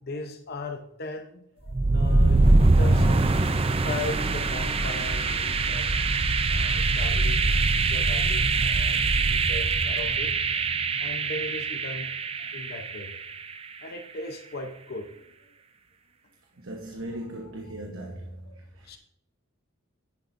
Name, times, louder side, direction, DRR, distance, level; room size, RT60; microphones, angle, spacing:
voice 1, 0.0-3.3 3.8-6.0 6.5-10.3 11.0-12.1 12.4-13.1 13.8-15.3 16.9-17.7 18.1-18.2 18.5-18.6 18.8-19.0, left 2 dB, 50° left, 0.8 m, -38 dB
sound 1, 1.7-13.5, right 3 dB, 30° right, 0.5 m, -23 dB
voice 2, 16.6-19.0, right 1 dB, 85° right, 1.1 m, -39 dB
10.5 x 9.6 x 2.6 m
head